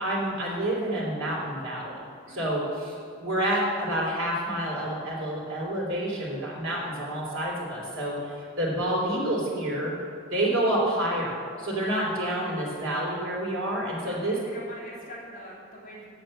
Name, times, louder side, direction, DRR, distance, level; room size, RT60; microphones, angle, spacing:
voice 1, 0.0-2.0 2.3-9.9 10.3-14.4, right 1 dB, 80° right, -4 dB, 3.4 m, -28 dB
voice 2, 2.3-2.6 14.0-16.1, equal, 40° left, -7 dB, 3.3 m, -44 dB
8.9 x 8.2 x 7.6 m, 2.3 s
head